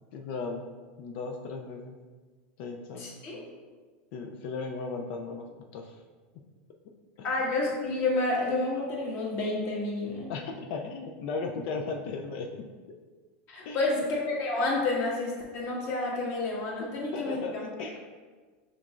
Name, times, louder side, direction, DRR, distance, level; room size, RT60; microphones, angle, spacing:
voice 1, 0.1-0.7 1.0-2.0 2.6-3.1 4.1-5.5 5.7-6.0 6.3-6.5 7.2-7.5 10.3-12.7 13.7-14.0 17.1-18.0, left 4 dB, 65° left, 3 dB, 0.4 m, -36 dB
voice 2, 3.0-3.4 7.2-10.3 13.5-18.0, left 2 dB, 45° left, -3 dB, 1.4 m, -30 dB
5.8 x 3.2 x 2.4 m, 1.4 s
supercardioid pair, 120°, 6 cm